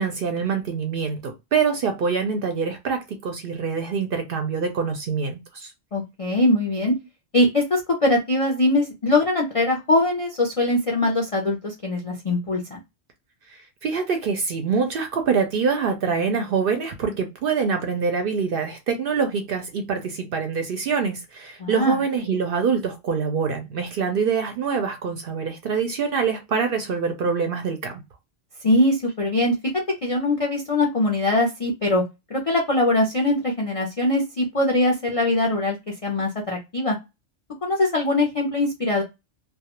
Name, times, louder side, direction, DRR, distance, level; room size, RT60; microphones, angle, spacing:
voice 1, 0.0-5.7 13.5-28.0, right 5 dB, 60° right, 0.6 m, -25 dB
voice 2, 5.9-6.9 7.3-12.8 21.6-22.0 28.6-32.0 32.3-35.8 36.0-37.0 37.6-39.0, left 2 dB, 55° left, 0.4 m, -22 dB
2.3 x 2.1 x 2.8 m
omnidirectional pair, 1.3 m